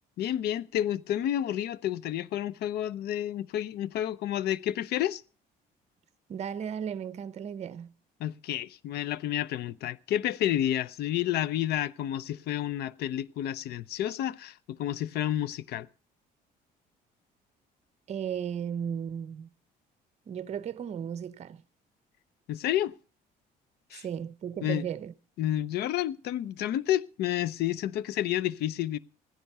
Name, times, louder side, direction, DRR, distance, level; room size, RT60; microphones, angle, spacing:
voice 1, 0.2-5.2 8.2-15.9 22.5-22.9 23.9-24.0 24.6-24.8 25.4-29.0, left 12 dB, 70° left, 0.6 m, -30 dB
voice 2, 6.3-7.9 18.1-19.5 20.3-21.6 23.9-25.1, right 8 dB, 40° right, 0.7 m, -35 dB
15.0 x 10.5 x 5.4 m
cardioid pair, 110°, 17 cm